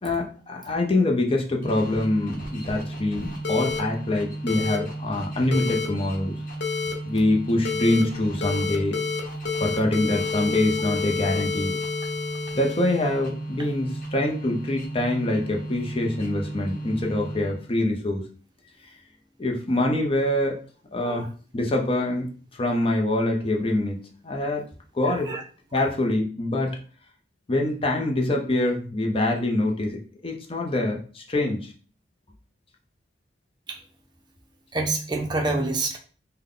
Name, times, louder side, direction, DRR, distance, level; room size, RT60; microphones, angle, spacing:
voice 1, 0.0-6.3 7.0-9.0 9.6-11.8 12.5-18.2 19.4-20.6 20.9-21.3 21.5-24.0 24.2-24.6 24.9-25.3 25.7-26.8 27.5-31.7, left 1 dB, 30° left, 1 dB, 0.6 m, -25 dB
sound 1, 1.6-17.8, right 2 dB, 50° left, 1.0 m, -35 dB
sound 2, 3.4-3.8 4.5-4.8 5.5-5.9 6.6-6.9 7.6-8.0 8.4-9.2 9.4-13.2, left 5 dB, 75° left, 0.7 m, -29 dB
voice 2, 25.0-25.4 33.7-33.8 34.7-36.0, right 2 dB, 25° right, 2 dB, 0.6 m, -27 dB
3.5 x 2.2 x 3.7 m, 0.40 s
head